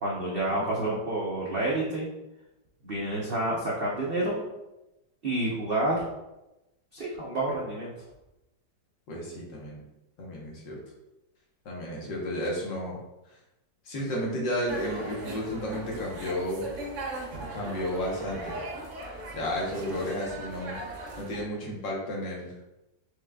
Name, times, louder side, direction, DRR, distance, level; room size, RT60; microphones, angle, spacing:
voice 1, 0.0-2.1 2.8-4.4 5.2-6.0 6.9-7.9, right 1 dB, 70° right, -5 dB, 0.5 m, -29 dB
voice 2, 0.6-0.9 9.1-9.8 10.2-10.8 11.7-13.0 13.9-16.7 17.5-18.6 19.3-20.8 21.2-22.5, equal, 85° left, -3 dB, 1.8 m, -32 dB
sound 1, 14.7-21.4, right 1 dB, 85° right, 1.6 m, -38 dB
4.9 x 3.6 x 2.2 m, 0.95 s
omnidirectional pair, 2.0 m